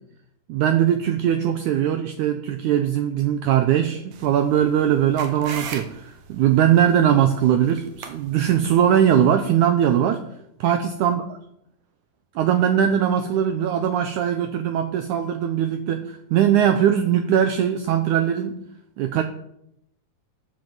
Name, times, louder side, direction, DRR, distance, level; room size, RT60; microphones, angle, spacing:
voice 1, 0.5-10.3 10.6-11.2 12.4-18.6 19.0-19.2, right 9 dB, 80° right, 8 dB, 1.8 m, -20 dB
sound 1, 4.1-9.2, right 6 dB, 60° right, 2.2 m, -39 dB
10.5 x 7.7 x 7.3 m, 0.76 s
omnidirectional pair, 4.3 m